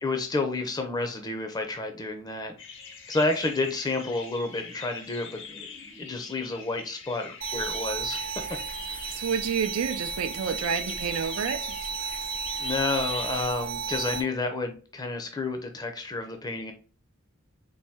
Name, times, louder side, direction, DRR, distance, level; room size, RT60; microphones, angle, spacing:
voice 1, 0.0-2.5 3.1-8.3 8.9-9.3 12.6-16.7, left 3 dB, 20° left, 0.5 m, -30 dB
sound 1, 2.6-13.5, left 5 dB, 60° left, 0.7 m, -44 dB
sound 2, 7.4-14.2, right 6 dB, 55° right, 0.8 m, -33 dB
voice 2, 9.1-11.6, right 7 dB, 90° right, 0.4 m, -29 dB
4.1 x 2.6 x 3.5 m
head